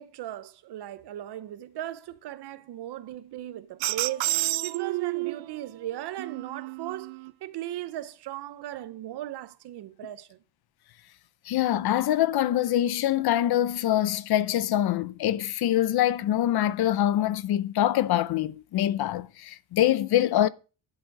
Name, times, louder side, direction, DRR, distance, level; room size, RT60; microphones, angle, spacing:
voice 1, 0.0-10.4, right 13 dB, 60° right, 0.8 m, -37 dB
sound 1, 3.8-5.6 6.2-7.3, right 20 dB, 80° right, 0.5 m, -30 dB
voice 2, 11.5-20.5, left 12 dB, 55° left, 0.7 m, -24 dB
11.5 x 7.7 x 4.7 m
cardioid pair, 175°, 46 cm